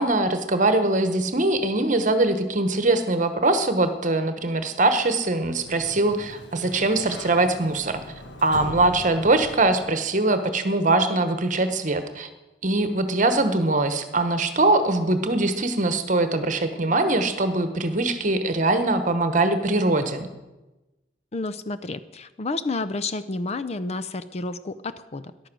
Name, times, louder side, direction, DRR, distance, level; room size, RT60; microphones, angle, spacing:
voice 1, 0.0-8.0 8.4-12.3 12.6-20.3, right 2 dB, 45° right, 9 dB, 1.1 m, -22 dB
Sliding door, 5.3-10.2, left 1 dB, 75° left, 1.6 m, -41 dB
voice 2, 21.3-25.5, left 3 dB, 35° left, 12 dB, 0.5 m, -30 dB
14.0 x 10.5 x 6.2 m, 1.1 s
head